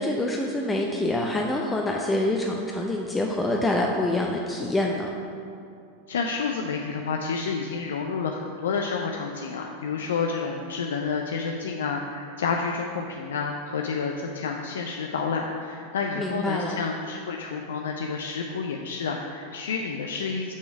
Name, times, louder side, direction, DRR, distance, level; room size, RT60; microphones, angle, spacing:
voice 1, 0.0-5.1 16.2-16.8, left 1 dB, 10° left, 0 dB, 0.5 m, -26 dB
voice 2, 6.1-20.5, left 5 dB, 80° left, 2 dB, 0.4 m, -29 dB
6.2 x 3.8 x 5.9 m, 2.6 s
hypercardioid pair, 95°, 0 cm